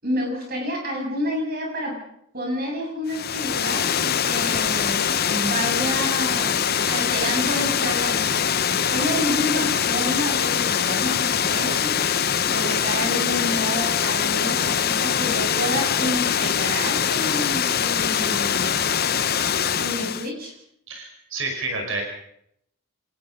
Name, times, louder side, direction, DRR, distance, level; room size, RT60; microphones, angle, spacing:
voice 1, 0.0-2.0 2.3-6.6 6.9-11.9 12.5-18.9 19.8-20.5, equal, 40° right, 0 dB, 8.0 m, -29 dB
Water, 3.1-20.3, left 8 dB, 45° left, 0.8 m, -23 dB
voice 2, 20.9-22.0, right 2 dB, 60° right, 3 dB, 5.3 m, -29 dB
26.0 x 19.0 x 5.5 m, 0.74 s
head